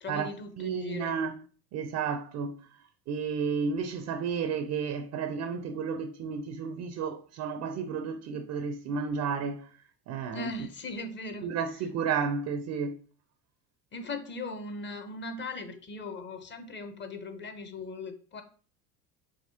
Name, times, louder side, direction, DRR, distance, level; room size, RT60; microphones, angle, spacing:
voice 1, 0.0-1.2 10.3-11.5 13.9-18.4, left 3 dB, 25° left, 0.7 m, -39 dB
voice 2, 0.6-1.3 1.7-2.6 3.1-9.7 10.1-10.5 11.4-13.0, right 6 dB, 40° right, 0.5 m, -32 dB
4.9 x 3.0 x 2.7 m
hypercardioid pair, 70°, 47 cm